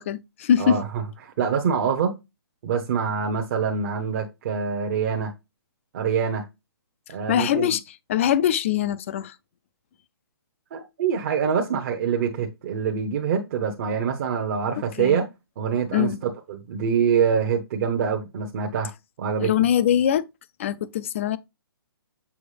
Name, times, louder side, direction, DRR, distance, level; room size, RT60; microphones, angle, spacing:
voice 1, 0.0-0.8 7.3-7.8 8.1-9.3 15.0-15.2 15.9-16.2 19.4-20.3 20.6-21.4, left 10 dB, 30° left, 0.4 m, -22 dB
voice 2, 0.6-2.2 2.6-5.3 5.9-6.4 7.1-7.8 10.7-15.3 15.6-18.9 19.2-19.5, right 7 dB, 35° right, 0.9 m, -25 dB
7.1 x 4.6 x 3.3 m
hypercardioid pair, 160°, 13 cm